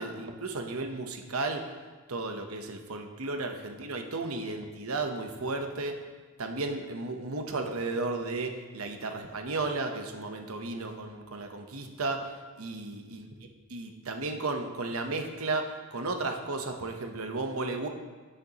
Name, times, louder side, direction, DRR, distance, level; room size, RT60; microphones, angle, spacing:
voice 1, 0.0-1.7 2.1-6.0 6.4-12.3 12.6-17.9, right 3 dB, 85° right, 4 dB, 0.9 m, -34 dB
16.5 x 6.7 x 3.0 m, 1.4 s
head